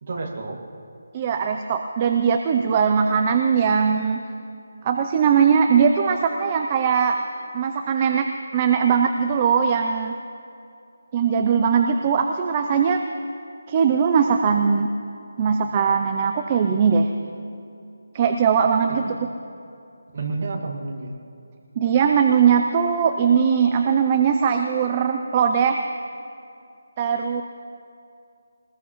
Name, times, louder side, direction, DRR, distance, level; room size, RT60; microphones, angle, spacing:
voice 1, 0.0-0.6 19.1-19.2 20.1-21.2, right 3 dB, 35° right, 0 dB, 1.9 m, -30 dB
voice 2, 1.1-4.2 4.8-7.2 7.5-8.3 8.5-10.1 11.1-13.0 13.7-14.9 15.4-17.1 18.1-19.0 21.8-25.8 27.0-27.4, right 6 dB, 20° right, 5 dB, 0.4 m, -20 dB
22.5 x 20.0 x 3.1 m, 2.6 s
figure-of-eight pair, 175°, 0 cm